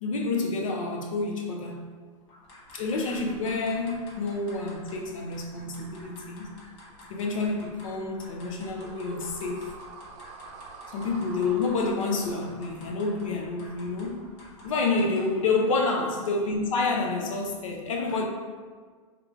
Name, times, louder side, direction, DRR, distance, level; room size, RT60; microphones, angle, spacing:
voice 1, 0.0-1.9 2.7-6.6 7.1-9.8 10.9-14.3 14.6-18.2, left 3 dB, 75° left, 2 dB, 0.7 m, -28 dB
sound 1, 2.3-15.5, equal, 60° left, 1.2 m, -50 dB
sound 2, 8.8-15.1, right 4 dB, 40° right, 0.6 m, -47 dB
3.7 x 3.0 x 3.5 m, 1.5 s
hypercardioid pair, 105°, 17 cm